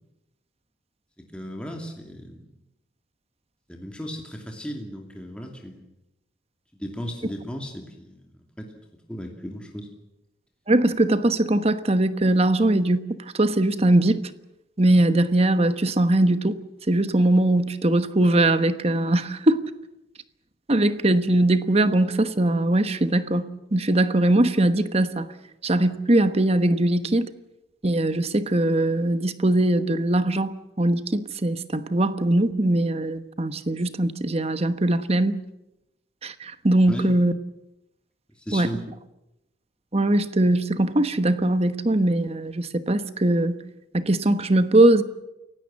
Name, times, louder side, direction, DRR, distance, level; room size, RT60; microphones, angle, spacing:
voice 1, 1.2-2.5 3.7-5.9 6.7-8.3 8.6-8.7 8.9-9.9 36.9-37.1 38.4-38.8, equal, 5° left, 2.6 m, -36 dB
voice 2, 10.7-13.1 13.3-14.3 14.8-16.6 16.9-19.6 20.7-25.3 25.6-27.3 27.8-35.4 36.2-37.3 38.5-38.7 39.9-43.6 43.9-45.0, right 1 dB, 35° right, 1.2 m, -21 dB
29.0 x 17.0 x 7.6 m
head